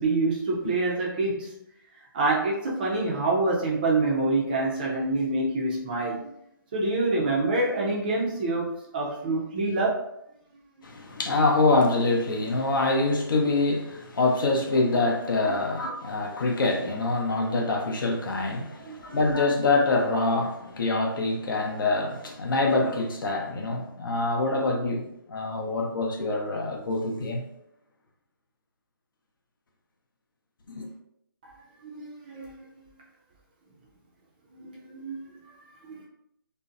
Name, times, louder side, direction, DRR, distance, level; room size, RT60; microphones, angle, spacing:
voice 1, 0.0-1.5 2.1-6.3 6.7-10.0 15.4-15.5 18.8-19.2 31.8-32.5 34.6-35.2 35.9-36.1, right 2 dB, 25° right, 0.4 m, -26 dB
voice 2, 10.8-27.4 30.7-30.9, left 3 dB, 65° left, 0.6 m, -25 dB
2.5 x 2.0 x 2.5 m
hypercardioid pair, 155°, 12 cm